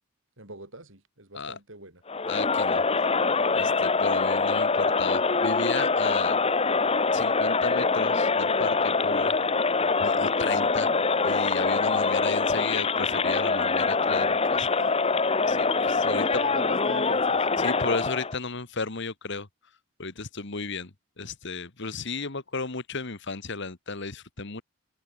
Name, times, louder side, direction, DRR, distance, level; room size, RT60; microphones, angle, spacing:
voice 1, 0.4-2.0 10.4-10.7 14.6-15.2 16.1-17.5, right 2 dB, 65° right, 6.6 m, -43 dB
Crowd, 2.1-18.4, left 4 dB, 30° left, 1.3 m, -24 dB
voice 2, 2.3-3.1 3.5-6.4 7.1-8.8 9.0-9.3 10.0-10.9 11.2-14.7 15.5-16.3 17.6-19.5 20.0-20.9 21.2-24.6, left 4 dB, 60° left, 1.8 m, -33 dB
head